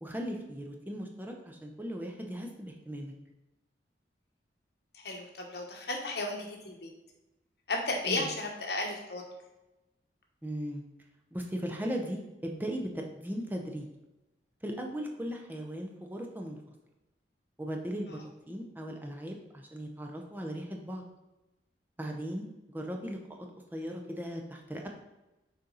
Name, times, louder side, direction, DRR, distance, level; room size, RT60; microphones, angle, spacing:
voice 1, 0.0-3.1 8.1-8.3 10.4-10.8 11.3-13.9 14.6-16.6 17.6-18.2 18.5-21.0 22.0-22.5 22.7-23.5 23.7-24.8, equal, 10° right, 2 dB, 0.6 m, -37 dB
voice 2, 4.9-6.9 7.7-9.2 18.1-18.2, left 2 dB, 65° left, 1 dB, 1.2 m, -34 dB
6.7 x 4.3 x 3.9 m, 1.0 s
head